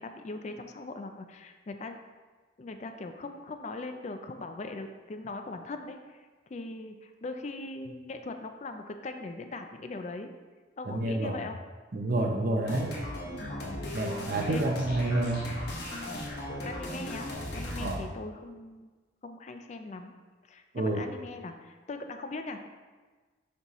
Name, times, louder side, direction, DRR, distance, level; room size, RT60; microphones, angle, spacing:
voice 1, 0.0-2.0 2.6-6.2 6.5-10.3 10.8-11.6 12.1-12.5 13.4-13.8 14.5-14.7 16.6-18.9 19.2-20.1 20.5-22.7, left 3 dB, 35° left, 6 dB, 0.4 m, -40 dB
voice 2, 10.9-11.3 11.9-13.0 13.9-15.4 17.8-18.0 20.7-21.0, right 2 dB, 50° right, 2 dB, 0.6 m, -29 dB
sound 1, 12.6-18.0, left 1 dB, 55° left, 1.2 m, -37 dB
6.5 x 5.4 x 3.0 m, 1.4 s
head